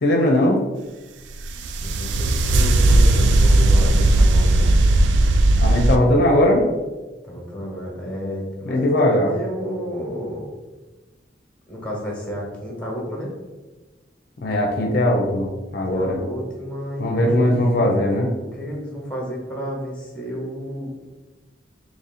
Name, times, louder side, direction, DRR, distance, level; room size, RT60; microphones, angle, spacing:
voice 1, 0.0-0.6 5.6-6.6 8.7-9.3 14.4-16.2 17.0-18.3, left 1 dB, 60° left, 1 dB, 0.5 m, -19 dB
sound 1, 1.4-6.0, right 2 dB, 90° right, 0.3 m, -16 dB
voice 2, 1.8-4.9 7.2-10.5 11.7-13.3 15.9-17.9 18.5-20.9, equal, 5° left, -3 dB, 1.0 m, -31 dB
3.0 x 2.7 x 4.1 m, 1.2 s
head